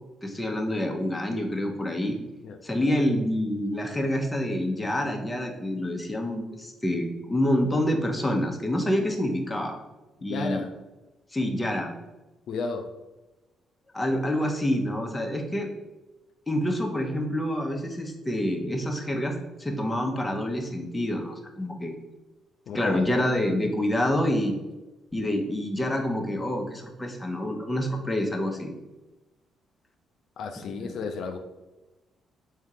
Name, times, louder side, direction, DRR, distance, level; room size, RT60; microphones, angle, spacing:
voice 1, 0.2-2.2 2.6-9.8 10.2-10.6 11.3-11.9 13.9-15.7 16.5-21.9 22.7-24.5 25.1-28.7 30.8-30.9, left 1 dB, 15° left, 2 dB, 0.7 m, -27 dB
voice 2, 10.2-10.7 12.5-12.9 22.7-23.1 30.4-31.4, left 4 dB, 70° left, 5 dB, 0.4 m, -33 dB
3.6 x 2.7 x 4.6 m, 1.1 s
cardioid pair, 90°, 0 cm